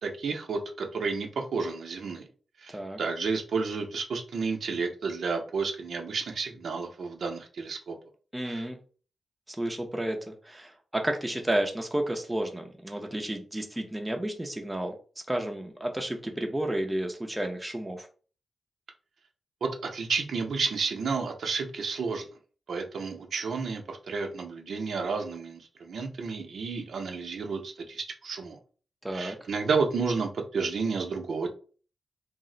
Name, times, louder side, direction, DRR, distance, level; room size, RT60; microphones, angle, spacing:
voice 1, 0.0-2.3 2.6-7.9 8.5-8.6 19.6-22.2 22.7-28.6 29.1-31.5, right 4 dB, 70° right, 4 dB, 0.5 m, -31 dB
voice 2, 8.3-8.8 9.5-14.9 15.3-18.1 29.0-29.5, right 1 dB, 10° right, 3 dB, 0.4 m, -31 dB
2.4 x 2.0 x 3.7 m, 0.39 s
wide cardioid pair, 115°, 0 cm